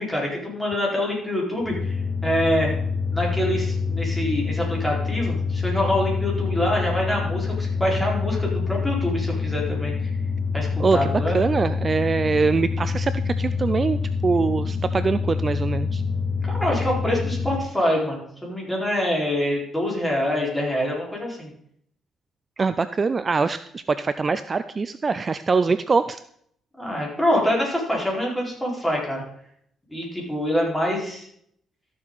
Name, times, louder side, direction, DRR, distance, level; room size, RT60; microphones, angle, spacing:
voice 1, 0.0-1.9 2.2-2.7 3.1-10.1 10.5-11.4 16.5-21.5 26.8-29.2 29.9-31.3, left 1 dB, 5° left, -3 dB, 4.8 m, -25 dB
sound 1, 1.6-17.7, left 5 dB, 25° left, 3.0 m, -26 dB
voice 2, 10.8-14.0 14.2-16.0 22.6-26.2, right 4 dB, 35° right, 12 dB, 0.4 m, -23 dB
13.5 x 7.4 x 4.1 m, 0.67 s
cardioid pair, 90°, 0 cm